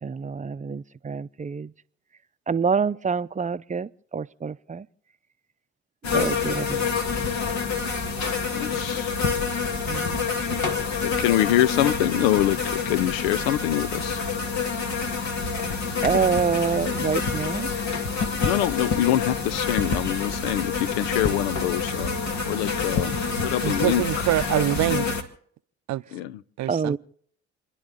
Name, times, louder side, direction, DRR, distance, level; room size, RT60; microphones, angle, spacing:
voice 1, 0.0-1.7 2.5-4.9 6.1-6.9 7.2-7.4 9.9-10.2 16.0-17.7 26.7-27.0, right 5 dB, 25° right, 0.6 m, -26 dB
sound 1, 6.0-25.2, left 5 dB, 65° left, 2.1 m, -27 dB
voice 2, 8.5-9.1 11.0-14.2 18.4-22.1 22.5-23.1 23.4-24.0 26.1-26.3, left 13 dB, 85° left, 0.5 m, -25 dB
voice 3, 23.6-25.2 25.9-26.0 26.6-27.0, right 15 dB, 65° right, 0.6 m, -25 dB
29.5 x 10.5 x 3.9 m
hypercardioid pair, 50°, 31 cm